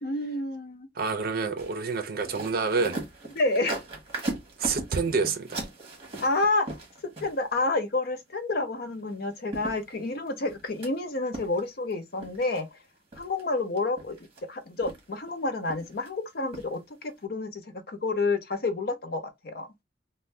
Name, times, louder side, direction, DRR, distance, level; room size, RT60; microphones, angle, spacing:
voice 1, 0.0-0.9 3.4-3.8 6.2-6.7 7.0-12.8 13.2-19.7, left 2 dB, 55° left, 0.6 m, -29 dB
voice 2, 1.0-3.0 4.6-5.6, right 4 dB, 50° right, 0.5 m, -28 dB
sound 1, 1.6-7.6 9.1-9.2 9.5-10.9 11.3-11.9 12.2-12.6 13.1-13.4 13.8-14.4 14.8-15.3 15.6-16.1 16.5-16.7 17.1-17.2, right 2 dB, 30° right, 1.1 m, -38 dB
2.6 x 2.1 x 3.2 m
head